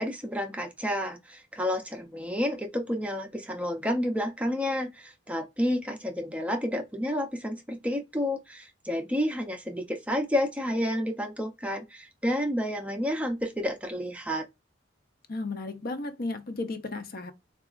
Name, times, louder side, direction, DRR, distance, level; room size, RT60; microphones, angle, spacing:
voice 1, 0.0-14.5, equal, 5° right, 0.5 m, -30 dB
voice 2, 15.3-17.3, left 2 dB, 50° left, 0.6 m, -34 dB
4.0 x 2.4 x 2.4 m
head